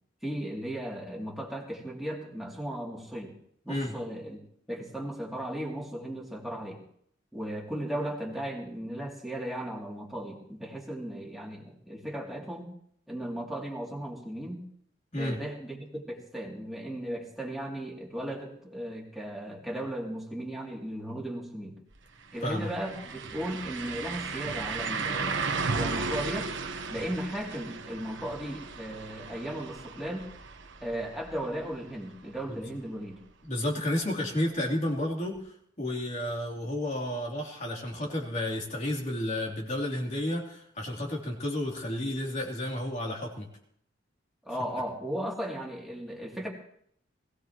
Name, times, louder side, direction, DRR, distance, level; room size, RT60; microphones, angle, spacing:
voice 1, 0.2-3.3 3.6-4.4 4.7-6.8 7.3-12.7 13.1-14.6 15.2-21.8 22.3-26.5 26.9-30.3 30.8-33.2 44.4-46.5, right 1 dB, ahead, -3 dB, 2.7 m, -36 dB
sound 1, 21.9-22.0 22.3-32.1 32.5-32.6 35.4-35.5, right 4 dB, 75° right, 1.2 m, -35 dB
voice 2, 33.4-35.4 35.8-43.5, left 1 dB, 40° left, -1 dB, 3.0 m, -31 dB
21.0 x 16.0 x 3.0 m, 0.67 s
head